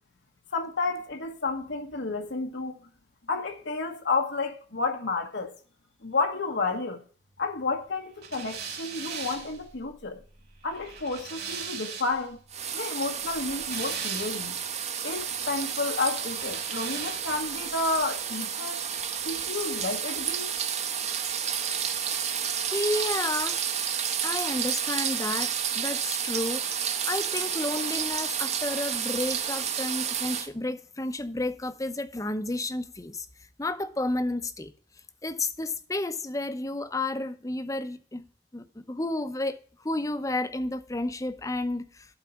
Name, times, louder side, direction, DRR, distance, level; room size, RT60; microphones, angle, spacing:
voice 1, 0.5-2.8 3.3-5.5 6.0-7.0 7.4-10.2 10.6-12.4 12.7-14.5 15.0-18.9 19.2-20.5 21.8-21.9, left 3 dB, 75° left, 1.2 m, -31 dB
sound 1, 8.2-12.3 13.2-14.7 16.3-17.6, right 6 dB, 60° right, 3.0 m, -39 dB
sound 2, 12.5-30.5, right 8 dB, 40° right, 0.9 m, -31 dB
voice 2, 22.7-23.6 24.2-26.6 27.0-33.3 33.6-34.7 35.2-38.3 38.5-42.2, left 2 dB, 20° left, 0.7 m, -31 dB
12.0 x 4.1 x 6.9 m
head